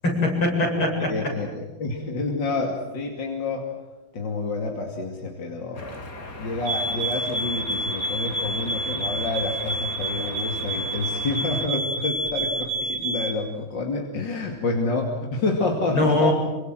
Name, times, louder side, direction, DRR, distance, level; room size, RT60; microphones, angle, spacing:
voice 1, 0.0-1.3 15.9-16.3, left 1 dB, 80° left, 0 dB, 9.0 m, -22 dB
voice 2, 1.1-3.6 4.1-6.1 6.4-16.3, left 3 dB, 60° left, 1 dB, 3.2 m, -28 dB
sound 1, 5.7-11.7, left 2 dB, 45° left, 3.1 m, -39 dB
sound 2, 6.7-13.4, right 1 dB, 85° right, 3.1 m, -29 dB
27.0 x 25.0 x 7.7 m, 1.2 s
omnidirectional pair, 2.2 m